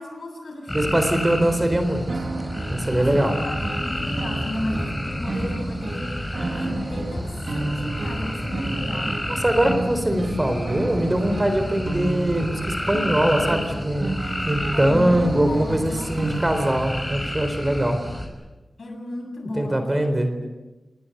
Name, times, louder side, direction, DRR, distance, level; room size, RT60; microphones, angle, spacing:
voice 1, 0.0-1.2 1.5-1.6 2.9-9.2 14.7-16.2 18.8-20.1 20.4-20.5, left 1 dB, 65° left, 4 dB, 7.5 m, -34 dB
sound 1, 0.7-18.3, equal, 10° left, 5.7 m, -30 dB
voice 2, 0.7-2.1 2.7-3.3 9.4-14.1 14.5-18.0 19.6-20.3, right 1 dB, 20° right, 8 dB, 4.0 m, -22 dB
sound 2, 2.1-16.7, right 2 dB, 55° right, 2.7 m, -32 dB
30.0 x 19.5 x 8.0 m, 1.1 s
wide cardioid pair, 90°, 0 cm